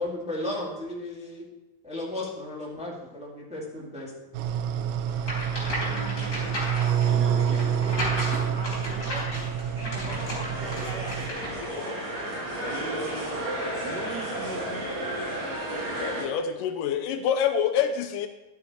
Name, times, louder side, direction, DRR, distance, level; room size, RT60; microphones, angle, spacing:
voice 1, 0.0-1.5 1.8-4.1, left 1 dB, 5° right, -5 dB, 1.2 m, -34 dB
sound 1, 4.3-11.3, right 8 dB, 85° right, 2.4 m, -28 dB
sound 2, 5.2-11.7, left 1 dB, 20° left, 4.2 m, -34 dB
voice 2, 5.8-6.5 7.0-11.2 12.6-13.3 13.8-14.9, right 2 dB, 70° right, -2 dB, 1.0 m, -40 dB
sound 3, 10.1-16.2, right 1 dB, 50° right, 3.7 m, -32 dB
voice 3, 11.6-11.9 15.8-18.3, left 8 dB, 80° left, 8 dB, 2.1 m, -27 dB
12.0 x 7.8 x 4.3 m, 1.0 s
omnidirectional pair, 4.0 m